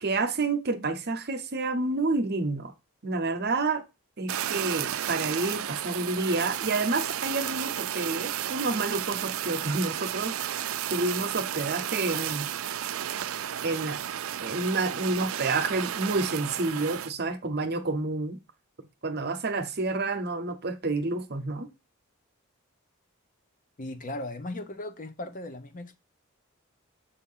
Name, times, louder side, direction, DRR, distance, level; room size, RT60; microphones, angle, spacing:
voice 1, 0.0-2.7 3.0-3.8 4.2-12.5 13.6-14.0 14.4-18.4 19.0-21.7, right 3 dB, 45° right, 0.9 m, -29 dB
Fire, 4.3-17.1, right 11 dB, 65° right, 0.4 m, -33 dB
voice 2, 23.8-26.0, left 1 dB, 40° left, 0.8 m, -37 dB
7.1 x 2.8 x 5.5 m
head